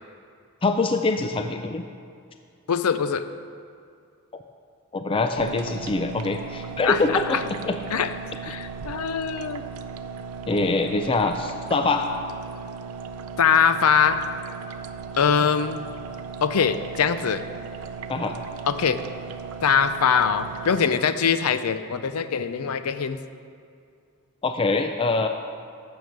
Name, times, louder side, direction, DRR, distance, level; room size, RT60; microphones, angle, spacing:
voice 1, 0.6-1.8 4.9-7.4 7.6-7.8 10.5-12.1 18.1-18.3 24.4-25.3, left 3 dB, 25° left, 6 dB, 0.4 m, -24 dB
voice 2, 2.7-3.3 6.8-7.4 7.9-8.1 8.4-9.6 13.4-14.2 15.2-15.8 16.4-17.4 18.7-19.0 19.6-23.2, left 6 dB, 80° left, 11 dB, 0.5 m, -22 dB
sound 1, 5.4-20.8, right 5 dB, 80° right, 0.5 m, -37 dB
9.3 x 7.0 x 6.4 m, 2.4 s
head